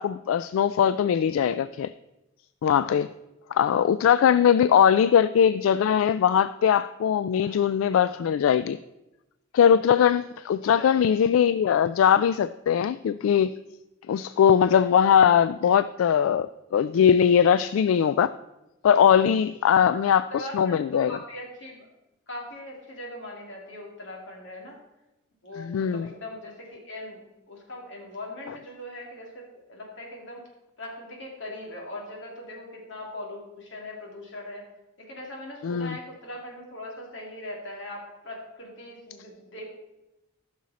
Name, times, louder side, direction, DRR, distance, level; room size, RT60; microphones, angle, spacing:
voice 1, 0.0-1.9 2.6-3.1 3.5-8.8 9.5-13.5 14.1-18.3 18.8-21.2 25.6-26.1 35.6-36.0, left 8 dB, 85° left, 14 dB, 0.3 m, -21 dB
voice 2, 20.3-21.9 22.3-24.8 25.4-30.4 30.8-34.6 35.0-39.6, left 1 dB, 65° left, -1 dB, 2.6 m, -40 dB
14.5 x 6.3 x 4.1 m, 0.97 s
head